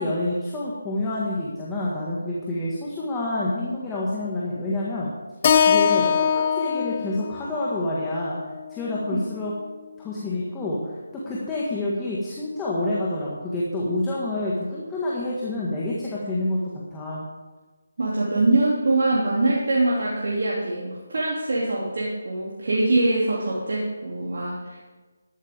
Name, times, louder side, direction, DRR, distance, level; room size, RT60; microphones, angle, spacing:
voice 1, 0.0-5.1 5.6-8.4 8.7-9.5 10.0-16.6 16.9-17.3, left 2 dB, 10° left, -6 dB, 1.8 m, -28 dB
Keyboard (musical), 5.4-9.7, left 7 dB, 35° left, 0.7 m, -23 dB
voice 2, 18.0-24.8, right 2 dB, 60° right, -6 dB, 2.9 m, -23 dB
13.0 x 12.5 x 3.7 m, 1.3 s
figure-of-eight pair, 155°, 0 cm